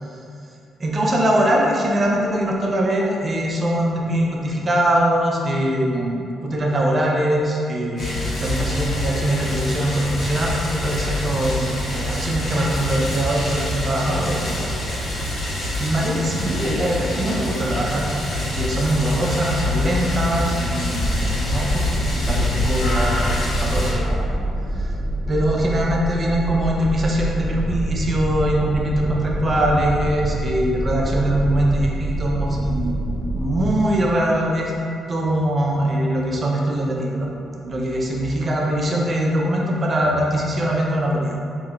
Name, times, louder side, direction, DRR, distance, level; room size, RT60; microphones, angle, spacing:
voice 1, 0.8-15.1 15.8-18.1 18.4-24.2 24.7-24.9 25.3-33.0 33.3-34.7 35.1-37.3 37.6-41.4, right 1 dB, 35° right, -2 dB, 0.7 m, -22 dB
sound 1, 8.0-23.9, left 1 dB, 65° left, 1.4 m, -25 dB
sound 2, 21.0-33.7, right 1 dB, ahead, 0.3 m, -26 dB
6.2 x 2.9 x 2.5 m, 2.6 s
cardioid pair, 90°, 0 cm